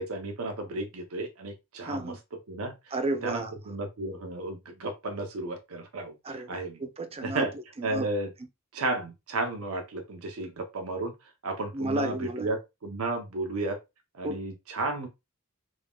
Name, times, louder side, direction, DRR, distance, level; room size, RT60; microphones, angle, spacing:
voice 1, 0.0-2.1 2.5-2.7 3.2-6.8 7.2-7.5 7.8-8.3 8.7-11.1 11.4-12.6 12.8-13.8 14.1-15.1, right 2 dB, 80° right, 0.8 m, -33 dB
voice 2, 1.8-2.2 2.9-3.5 6.2-8.1 11.7-12.5 14.2-14.4, right 2 dB, 30° right, 0.5 m, -32 dB
3.6 x 3.6 x 2.3 m
head